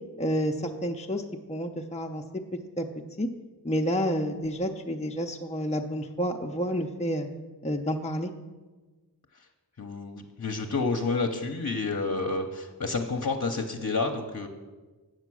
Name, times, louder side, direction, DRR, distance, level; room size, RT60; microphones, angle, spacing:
voice 1, 0.2-1.2 1.5-2.2 2.5-2.9 3.2-3.3 3.6-7.3 7.6-8.3, equal, 15° left, 2 dB, 0.6 m, -29 dB
voice 2, 9.8-14.5, left 3 dB, 50° left, 3 dB, 0.8 m, -29 dB
8.0 x 6.7 x 6.2 m, 1.3 s
wide cardioid pair, 45°, 39 cm